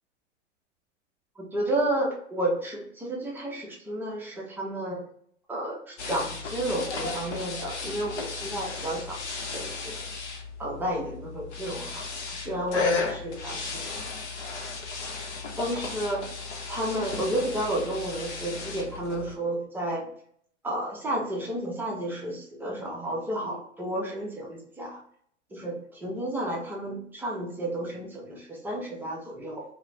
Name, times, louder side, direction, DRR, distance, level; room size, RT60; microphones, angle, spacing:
voice 1, 1.4-5.0 5.5-9.2 9.5-10.0 10.6-13.8 15.6-16.3 16.7-20.1 20.6-25.0 25.5-29.6, right 1 dB, 5° right, -3 dB, 0.5 m, -31 dB
sound 1, 6.0-19.4, left 4 dB, 65° left, 0.7 m, -35 dB
2.3 x 2.0 x 3.2 m, 0.62 s
hypercardioid pair, 105°, 37 cm